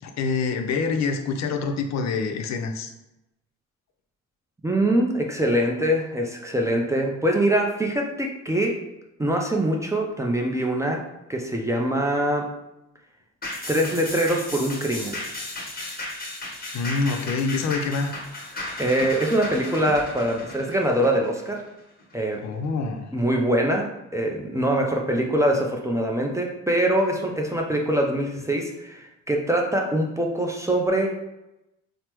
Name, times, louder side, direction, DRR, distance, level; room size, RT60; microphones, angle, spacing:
voice 1, 0.0-2.9 16.7-18.2 22.4-23.1, left 4 dB, 65° left, 5 dB, 0.5 m, -26 dB
voice 2, 4.6-8.8 9.2-12.5 13.7-15.2 18.5-21.6 22.1-22.4 23.1-31.2, right 1 dB, 10° right, 0 dB, 0.3 m, -23 dB
sound 1, 13.4-22.1 22.5-22.6, left 2 dB, 30° left, 1.2 m, -35 dB
3.2 x 2.0 x 2.9 m, 0.93 s
cardioid pair, 90°, 30 cm